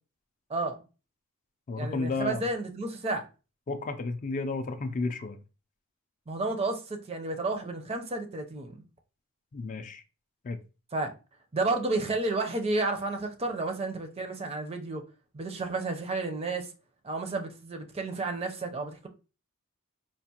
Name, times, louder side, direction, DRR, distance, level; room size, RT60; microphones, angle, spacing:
voice 1, 0.5-0.8 1.7-3.3 6.3-8.8 10.9-11.1 11.5-15.0 15.3-16.7 17.0-19.1, right 2 dB, 25° right, 0.5 m, -31 dB
voice 2, 1.7-2.5 3.7-5.4 9.5-10.0 10.4-10.6, left 3 dB, 35° left, 0.3 m, -32 dB
4.5 x 2.4 x 2.8 m
head